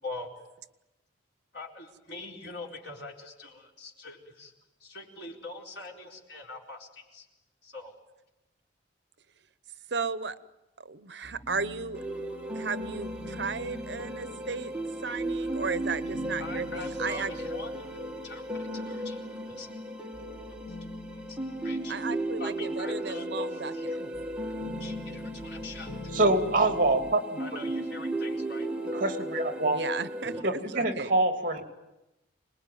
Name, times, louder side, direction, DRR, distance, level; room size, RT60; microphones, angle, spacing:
voice 1, 1.5-4.5 4.8-7.3 7.6-7.9 16.4-19.2 19.5-19.7 21.3-22.0 22.4-24.1 24.8-25.9 27.4-28.7 30.4-30.5, left 2 dB, 60° left, 0 dB, 4.6 m, -43 dB
voice 2, 9.9-10.4 10.8-12.0 12.5-14.7 15.0-17.3 21.9-24.0 29.6-31.1, right 4 dB, 65° right, 14 dB, 0.9 m, -35 dB
sound 1, 11.2-19.6 20.1-27.2, left 2 dB, 45° left, 1.5 m, -46 dB
sound 2, 11.9-30.4, right 1 dB, 5° right, 1.6 m, -35 dB
voice 3, 26.1-27.7 28.9-29.8 30.4-31.6, right 2 dB, 45° right, 6 dB, 2.9 m, -26 dB
26.0 x 20.5 x 9.5 m, 0.95 s
head